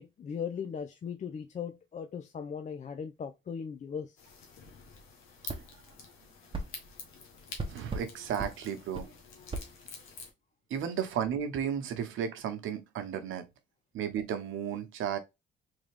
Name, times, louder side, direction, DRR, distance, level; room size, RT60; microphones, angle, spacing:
voice 1, 0.0-4.2, left 7 dB, 40° left, 0.5 m, -38 dB
sound 1, 4.2-10.3, left 5 dB, 90° left, 1.3 m, -48 dB
sound 2, 5.5-5.6 6.5-6.7 7.6-8.1 8.4-8.5 8.9-9.1 9.5-9.7, right 2 dB, 25° right, 0.9 m, -36 dB
voice 2, 7.7-9.1 10.7-13.4 13.9-15.2, right 8 dB, 80° right, 0.9 m, -34 dB
3.7 x 3.3 x 3.4 m
cardioid pair, 90°, 20 cm